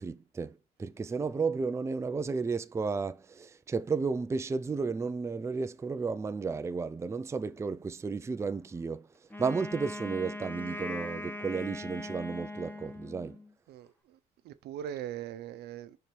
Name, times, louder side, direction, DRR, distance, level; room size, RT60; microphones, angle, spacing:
voice 1, 0.0-9.1 9.4-13.4, right 4 dB, 15° right, 0.4 m, -33 dB
Wind instrument woodwind instrument, 9.3-13.5, left 2 dB, 10° left, 1.1 m, -40 dB
voice 2, 13.7-14.2 14.4-16.0, right 10 dB, 75° right, 0.8 m, -40 dB
5.3 x 4.3 x 4.5 m
cardioid pair, 110°, 17 cm